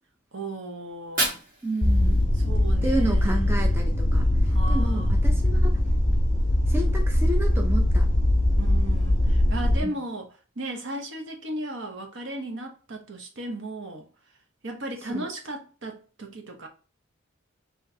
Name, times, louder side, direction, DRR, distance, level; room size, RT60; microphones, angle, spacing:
voice 1, 0.3-1.4 2.3-3.4 4.5-5.1 8.6-10.3 10.6-14.1 14.6-16.7, right 1 dB, 60° right, 1.0 m, -36 dB
Fire, 0.9-2.9, right 2 dB, 40° right, 1.6 m, -32 dB
voice 2, 1.6-2.2 2.8-5.7 6.7-8.1 9.8-9.9 15.1-15.3, right 1 dB, 10° right, 0.5 m, -31 dB
sound 1, 1.8-9.8, left 1 dB, 40° left, 1.1 m, -21 dB
6.1 x 3.1 x 2.8 m
head